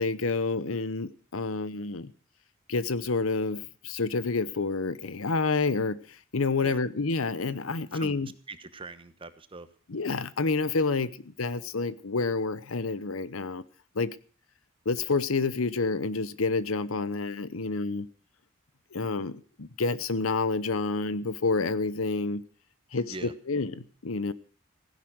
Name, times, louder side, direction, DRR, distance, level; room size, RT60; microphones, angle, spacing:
voice 1, 0.0-2.1 2.7-8.3 9.9-13.6 13.9-14.2 14.8-18.1 18.9-22.4 22.9-23.1 23.5-24.3, left 3 dB, 90° left, 0.9 m, -29 dB
voice 2, 8.5-9.7 22.9-23.3, right 3 dB, 25° right, 1.1 m, -42 dB
16.0 x 11.0 x 6.3 m
head